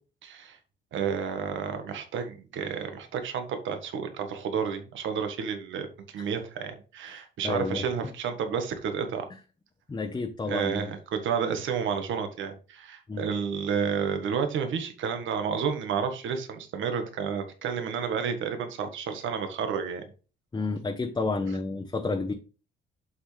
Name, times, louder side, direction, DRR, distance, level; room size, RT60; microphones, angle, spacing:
voice 1, 0.2-0.6 0.9-9.2 10.5-20.1, right 6 dB, 75° right, 7 dB, 1.5 m, -31 dB
voice 2, 7.1-7.8 9.9-10.9 13.1-13.3 20.5-22.3, left 3 dB, 20° left, 3 dB, 0.9 m, -31 dB
7.7 x 6.1 x 3.3 m, 0.35 s
cardioid pair, 90°, 20 cm